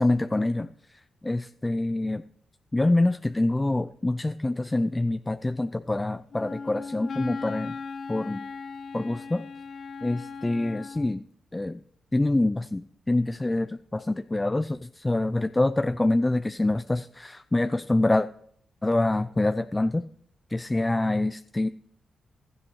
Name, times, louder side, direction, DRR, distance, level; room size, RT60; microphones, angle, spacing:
voice 1, 0.0-2.2 2.7-7.8 8.1-8.4 8.9-9.4 10.0-11.2 11.5-11.8 12.1-18.3 18.8-20.0 20.5-21.7, left 2 dB, 20° left, 12 dB, 0.4 m, -26 dB
Wind instrument woodwind instrument, 6.3-11.1, left 5 dB, 60° left, 0.8 m, -38 dB
16.0 x 12.5 x 3.1 m, 0.64 s
cardioid pair, 65°, 0 cm